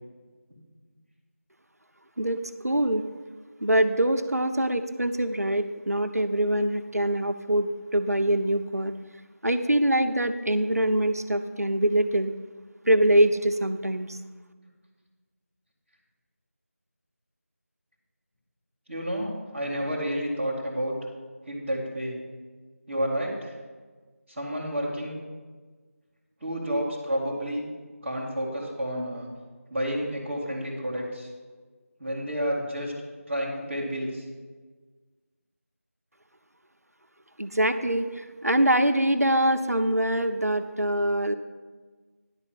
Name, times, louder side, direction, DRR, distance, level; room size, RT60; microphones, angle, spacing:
voice 1, 2.2-3.0 3.6-8.9 9.4-12.3 12.9-14.2 37.4-41.3, right 1 dB, 90° right, 8 dB, 0.7 m, -24 dB
voice 2, 18.9-21.0 21.4-22.2 22.9-23.5 24.3-25.2 26.4-27.7 28.0-29.3 29.7-31.3 32.0-32.9 33.3-34.2, equal, 5° right, -14 dB, 0.8 m, -30 dB
10.5 x 4.1 x 7.3 m, 1.4 s
figure-of-eight pair, 170°, 8 cm